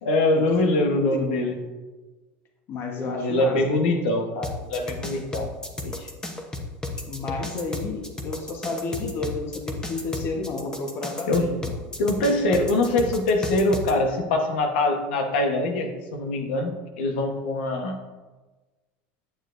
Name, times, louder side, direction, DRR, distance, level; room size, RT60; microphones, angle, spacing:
voice 1, 0.0-1.6 3.0-5.5 5.8-6.1 11.3-11.4 12.0-18.0, left 2 dB, 85° left, 4 dB, 1.1 m, -23 dB
voice 2, 2.7-3.6 7.1-11.7, left 3 dB, 45° left, 2 dB, 1.2 m, -31 dB
sound 1, 4.4-13.9, left 2 dB, 15° left, 0.9 m, -33 dB
9.0 x 7.0 x 2.6 m, 1.3 s
supercardioid pair, 120°, 6 cm